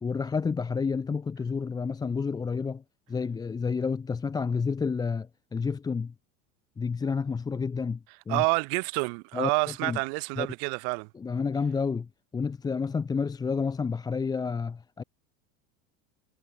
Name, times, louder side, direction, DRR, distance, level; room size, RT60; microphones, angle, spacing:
voice 1, 0.0-2.8 3.1-6.1 6.8-8.0 8.3-8.4 9.3-9.5 9.8-10.0 10.4-10.5 11.1-15.0, left 5 dB, 10° left, 0.5 m, -30 dB
voice 2, 8.3-11.1, right 40 dB or more, 60° right, 0.6 m, -28 dB
supercardioid pair, 110°, 36 cm